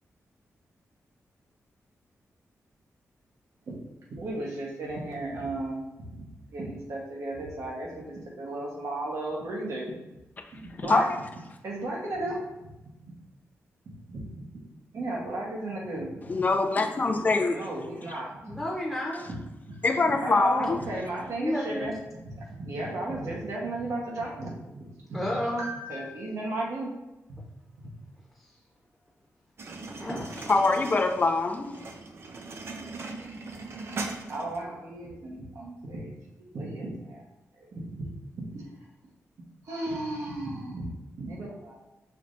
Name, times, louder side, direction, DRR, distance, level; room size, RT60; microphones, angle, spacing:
voice 1, 4.1-5.9 6.1-10.0 10.5-11.1 11.6-12.7 13.0-13.1 13.9-14.3 14.5-14.6 14.9-16.1 17.5-18.6 19.3-19.4 19.7-19.8 20.2-21.9 22.2-26.9 27.3-27.4 27.8-27.9 34.3-36.1 36.4-37.2 37.6-38.1 38.4-38.6 39.6-40.9 41.2-41.8, right 2 dB, 70° right, -2 dB, 1.2 m, -35 dB
voice 2, 10.7-11.2 16.3-17.6 19.8-20.8 30.5-32.0, left 3 dB, 30° left, 5 dB, 0.5 m, -24 dB
voice 3, 18.4-19.2 21.4-21.9 25.1-25.7 29.8-30.2, left 1 dB, ahead, -5 dB, 0.9 m, -31 dB
sound 1, 29.6-34.6, right 3 dB, 50° right, 0.5 m, -39 dB
5.7 x 3.1 x 2.7 m, 0.99 s
wide cardioid pair, 130°, 5 cm